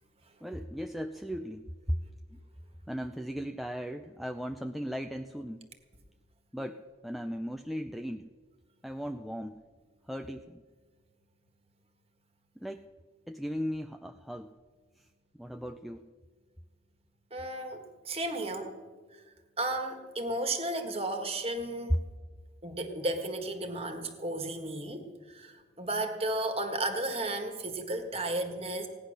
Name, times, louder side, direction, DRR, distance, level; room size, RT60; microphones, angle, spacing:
voice 1, 0.4-2.0 2.3-2.4 2.9-5.6 6.5-8.3 8.8-9.6 10.1-10.6 12.6-12.9 13.3-14.5 15.4-16.0, equal, ahead, 5 dB, 0.3 m, -37 dB
voice 2, 17.3-18.7 19.1-19.2 19.6-21.9 22.6-28.9, right 1 dB, 30° right, 6 dB, 1.5 m, -34 dB
17.0 x 9.9 x 6.4 m, 1.5 s
head